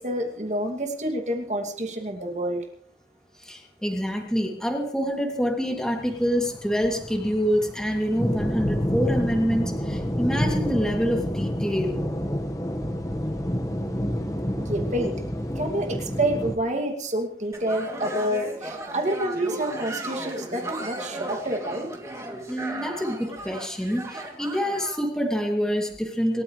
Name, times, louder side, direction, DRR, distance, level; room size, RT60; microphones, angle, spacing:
voice 1, 0.0-2.6 14.6-15.2 15.6-21.9, right 1 dB, 40° right, 3 dB, 2.5 m, -28 dB
voice 2, 3.4-12.0 22.5-26.4, equal, 5° left, 0 dB, 2.7 m, -26 dB
sound 1, 5.9-16.6, equal, 20° left, 1.6 m, -29 dB
sound 2, 17.5-25.1, right 1 dB, 20° right, 2.8 m, -36 dB
27.5 x 14.0 x 3.3 m, 0.62 s
head